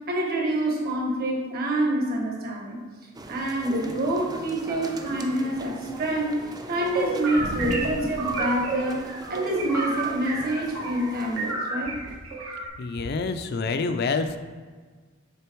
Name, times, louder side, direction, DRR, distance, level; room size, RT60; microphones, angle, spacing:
voice 1, 0.0-2.8 3.3-11.9, right 1 dB, 50° right, 0 dB, 1.4 m, -27 dB
sound 1, 3.1-11.5, right 1 dB, 20° right, 0.5 m, -41 dB
sound 2, 6.7-11.1 11.4-12.7, right 2 dB, 85° right, 2.0 m, -31 dB
sound 3, 7.4-9.4 9.6-9.8 10.4-11.0 11.8-12.3, equal, 65° right, 1.4 m, -37 dB
voice 2, 12.8-14.4, left 4 dB, 55° left, 8 dB, 0.4 m, -27 dB
6.7 x 4.3 x 4.6 m, 1.5 s
head